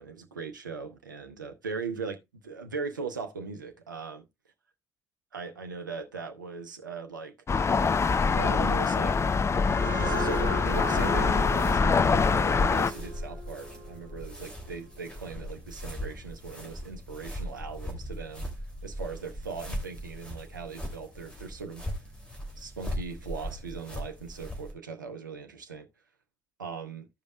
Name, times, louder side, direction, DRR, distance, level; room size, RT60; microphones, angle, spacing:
voice 1, 0.0-4.2 5.3-7.3 8.3-9.2 9.8-18.5 18.8-21.8 22.6-25.9 26.6-27.1, right 4 dB, 80° right, 0.7 m, -39 dB
sound 1, 7.5-12.9, left 5 dB, 25° left, 0.5 m, -24 dB
sound 2, 9.5-14.7, right 1 dB, 90° left, 1.1 m, -37 dB
sound 3, 9.7-24.7, equal, 10° left, 2.6 m, -39 dB
15.0 x 5.2 x 2.3 m
figure-of-eight pair, 45°, 10 cm